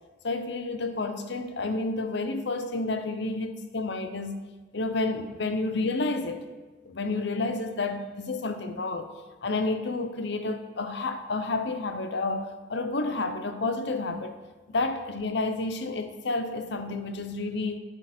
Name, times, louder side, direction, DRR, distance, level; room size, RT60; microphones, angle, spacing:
voice 1, 0.2-4.4 4.7-6.4 6.8-9.1 9.4-14.3 14.7-17.8, left 3 dB, 60° left, 8 dB, 0.8 m, -30 dB
9.8 x 7.6 x 4.4 m, 1.3 s
head